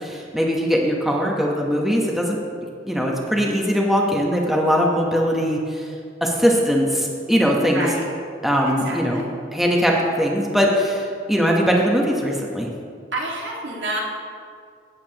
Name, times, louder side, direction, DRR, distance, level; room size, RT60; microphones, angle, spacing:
voice 1, 0.0-2.4 2.8-5.8 6.2-7.9 8.4-9.2 9.5-12.7, equal, ahead, -2 dB, 1.1 m, -20 dB
voice 2, 7.7-8.1 8.7-9.3 13.1-14.0, right 2 dB, 75° right, -3 dB, 2.1 m, -29 dB
16.0 x 8.4 x 2.9 m, 2.2 s
head